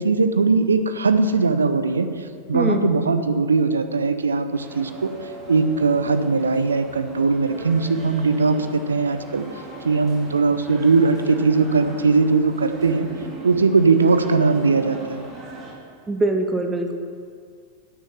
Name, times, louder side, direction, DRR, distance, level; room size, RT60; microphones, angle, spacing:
voice 1, 0.0-2.1 2.5-5.1 5.5-9.4 9.8-13.1 13.4-15.3, right 4 dB, 75° right, 9 dB, 0.7 m, -19 dB
voice 2, 2.5-2.9 16.1-16.9, right 2 dB, 10° right, 4 dB, 0.9 m, -22 dB
sound 1, 4.5-15.7, right 2 dB, 30° right, 3.1 m, -39 dB
9.6 x 6.4 x 7.4 m, 2.1 s
figure-of-eight pair, 90°, 0 cm